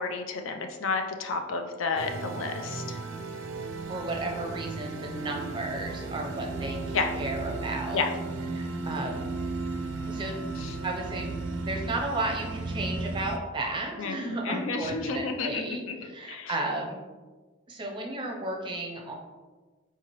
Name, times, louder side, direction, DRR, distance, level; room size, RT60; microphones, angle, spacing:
voice 1, 0.0-3.0 6.9-7.1 7.9-8.1 10.6-10.8 14.0-16.0 16.3-16.5, left 4 dB, 80° left, 5 dB, 0.5 m, -31 dB
sound 1, 2.0-13.4, right 3 dB, 75° right, 0.4 m, -35 dB
voice 2, 3.9-8.0 8.5-9.3 10.1-10.4 10.8-11.3 11.6-17.0 17.7-19.1, right 2 dB, 25° right, 0 dB, 0.5 m, -33 dB
4.6 x 2.8 x 3.0 m, 1.3 s
head